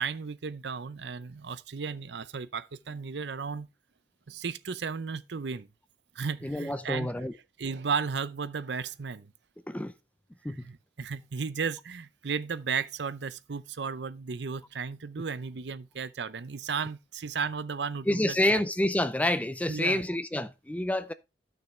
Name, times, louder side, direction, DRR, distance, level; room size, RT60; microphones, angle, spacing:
voice 1, 0.0-3.7 4.3-5.7 6.1-7.3 7.6-9.3 10.4-18.6 19.7-20.0, right 5 dB, 70° right, 0.6 m, -34 dB
voice 2, 6.4-7.3 9.7-9.9 10.4-10.7 18.1-21.1, left 1 dB, 10° left, 0.5 m, -28 dB
13.0 x 6.2 x 3.2 m
head